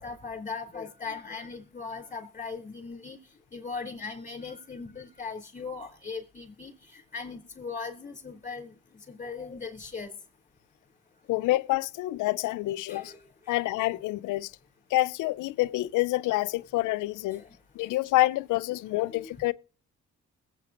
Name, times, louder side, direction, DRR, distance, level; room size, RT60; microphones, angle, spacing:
voice 1, 0.0-3.2 3.5-10.1 12.9-13.2 13.5-13.6 17.2-17.5 19.1-19.3, left 4 dB, 25° left, 4.0 m, -39 dB
voice 2, 11.3-13.1 13.5-14.5 14.9-17.4 17.8-19.5, left 18 dB, 85° left, 0.5 m, -27 dB
21.5 x 8.5 x 3.0 m
cardioid pair, 90°, 30 cm